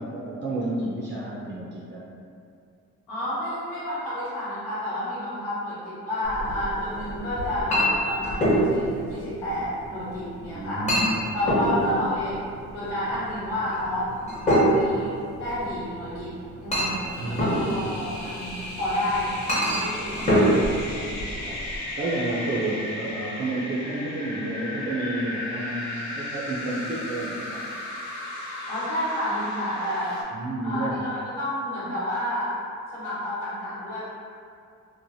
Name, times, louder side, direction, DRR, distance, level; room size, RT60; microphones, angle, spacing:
voice 1, 0.0-2.1 10.5-11.1 11.4-12.2 17.2-18.0 20.1-21.1 21.4-27.6 30.3-31.0, right 2 dB, 40° right, -6 dB, 0.5 m, -31 dB
voice 2, 3.1-10.8 11.3-12.3 12.7-14.1 14.4-20.4 28.7-30.2 30.6-32.5 32.9-34.0, left 1 dB, 85° left, -11 dB, 1.1 m, -30 dB
Chink clink, 6.2-21.8, equal, 25° left, 0.9 m, -27 dB
sound 1, 16.8-30.2, left 1 dB, 65° left, 0.6 m, -35 dB
3.1 x 2.1 x 2.6 m, 2.4 s
cardioid pair, 90°, 30 cm